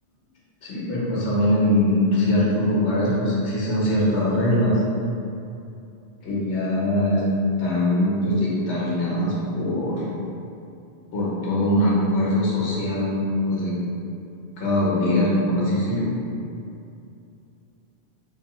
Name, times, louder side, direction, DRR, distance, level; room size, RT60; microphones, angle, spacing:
voice 1, 0.6-4.8 6.2-7.2 7.6-10.0 11.1-13.7 14.6-16.2, left 1 dB, 90° left, -6 dB, 1.0 m, -22 dB
2.7 x 2.2 x 2.9 m, 2.6 s
omnidirectional pair, 1.1 m